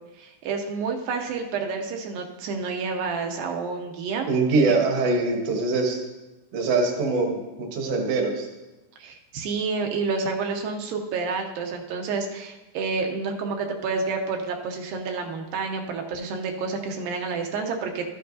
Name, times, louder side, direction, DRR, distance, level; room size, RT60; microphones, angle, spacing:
voice 1, 0.2-4.3 4.7-4.8 9.0-18.1, right 4 dB, 80° right, 3 dB, 2.4 m, -29 dB
voice 2, 4.3-6.0 6.5-8.5, right 3 dB, 60° right, 1 dB, 1.7 m, -23 dB
13.5 x 7.7 x 2.6 m, 1.1 s
omnidirectional pair, 4.3 m